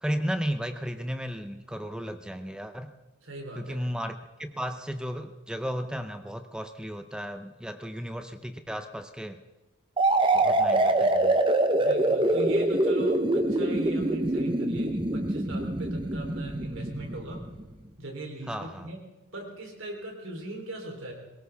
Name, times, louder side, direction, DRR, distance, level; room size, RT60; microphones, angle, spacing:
voice 1, 0.0-2.9 3.6-9.4 10.3-11.4 18.5-18.9, equal, 5° right, 8 dB, 0.6 m, -34 dB
voice 2, 3.2-3.9 11.8-17.5 18.0-19.0 19.3-21.1, right 1 dB, 60° right, 1 dB, 3.7 m, -39 dB
sound 1, 10.0-17.6, right 2 dB, 25° right, 0.9 m, -25 dB
22.5 x 18.0 x 3.5 m, 1.1 s
head